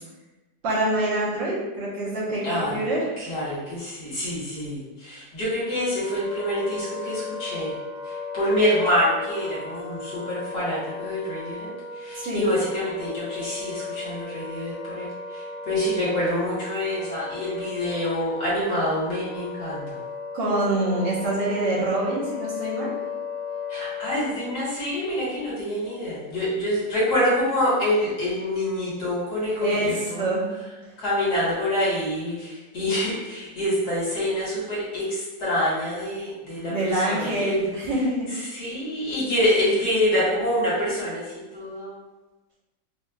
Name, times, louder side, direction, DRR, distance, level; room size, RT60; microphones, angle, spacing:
voice 1, 0.6-3.0 12.2-12.5 20.3-22.9 29.6-30.5 36.7-38.3, right 1 dB, 85° right, -7 dB, 1.7 m, -25 dB
voice 2, 2.4-2.8 3.2-7.7 8.0-11.7 12.0-20.0 23.7-30.3 31.0-37.7 38.3-41.9, left 1 dB, 60° left, -8 dB, 1.8 m, -26 dB
Wind instrument woodwind instrument, 5.5-24.6, left 3 dB, 40° right, 0.6 m, -36 dB
4.8 x 2.2 x 2.3 m, 1.1 s
omnidirectional pair, 2.0 m